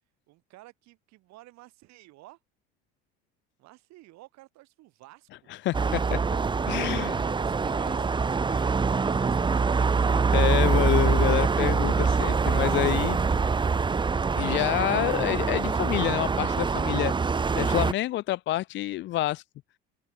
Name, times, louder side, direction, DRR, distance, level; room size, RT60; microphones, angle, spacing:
voice 1, 0.3-2.4 3.6-5.5 7.2-9.8, right 18 dB, 65° right, 7.7 m, -52 dB
voice 2, 5.5-6.2 6.7-7.2 10.3-13.2 14.4-17.1 17.5-19.4, left 15 dB, 40° left, 0.4 m, -27 dB
sound 1, 5.7-17.9, right 4 dB, 15° right, 0.8 m, -24 dB
open air
supercardioid pair, 100°, 29 cm